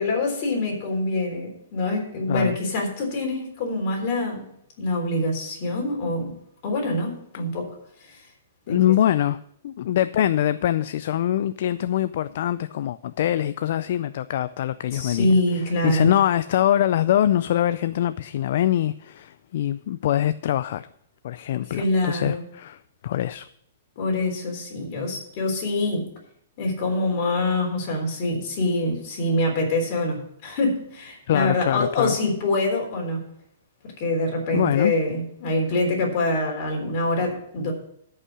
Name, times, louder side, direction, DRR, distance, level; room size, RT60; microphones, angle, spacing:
voice 1, 0.0-4.4 4.8-6.3 6.6-7.6 8.0-8.2 8.7-8.8 14.9-16.1 21.7-22.4 24.0-26.1 26.6-33.2 34.0-37.7, left 2 dB, 40° left, 0 dB, 3.7 m, -25 dB
voice 2, 8.7-15.3 15.8-20.9 21.2-23.5 31.3-32.2 34.5-34.9, left 11 dB, 55° left, 14 dB, 0.4 m, -23 dB
13.5 x 5.6 x 6.2 m, 0.71 s
hypercardioid pair, 160°, 0 cm